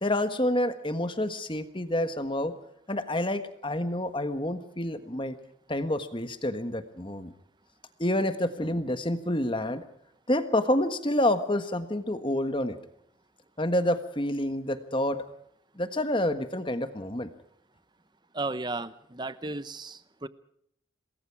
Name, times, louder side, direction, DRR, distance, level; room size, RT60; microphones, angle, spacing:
voice 1, 0.0-2.5 2.9-5.4 5.7-7.3 8.0-9.8 10.3-12.8 13.6-15.2 15.8-17.3, left 1 dB, 25° left, 10 dB, 1.4 m, -28 dB
voice 2, 18.3-20.3, right 2 dB, 20° right, 14 dB, 0.9 m, -34 dB
27.5 x 20.5 x 4.8 m, 0.71 s
head